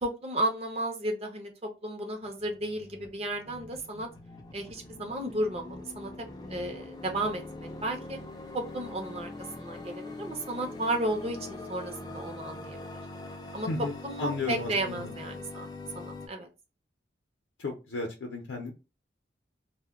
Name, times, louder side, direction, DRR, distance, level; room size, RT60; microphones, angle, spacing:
voice 1, 0.0-4.1 4.5-8.2 8.5-9.3 9.6-12.8 13.5-15.7 16.0-16.5, right 1 dB, 35° right, 3 dB, 0.5 m, -33 dB
sound 1, 2.2-16.3, left 2 dB, 20° left, 0.3 m, -43 dB
voice 2, 13.7-15.1 17.6-18.7, left 3 dB, 85° left, 1 dB, 0.5 m, -34 dB
2.1 x 2.1 x 3.4 m, 0.29 s
head